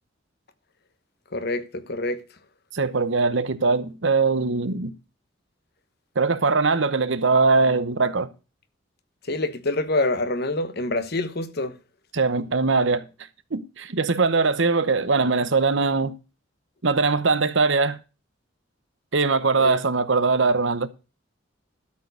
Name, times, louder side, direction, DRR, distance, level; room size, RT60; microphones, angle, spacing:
voice 1, 1.3-2.2 9.3-11.7 19.6-19.8, left 2 dB, 55° left, 1.1 m, -26 dB
voice 2, 2.7-4.9 6.2-8.3 12.1-13.1 13.5-16.1 16.8-18.0 19.1-20.9, right 4 dB, 70° right, 0.9 m, -21 dB
12.5 x 4.6 x 8.1 m
head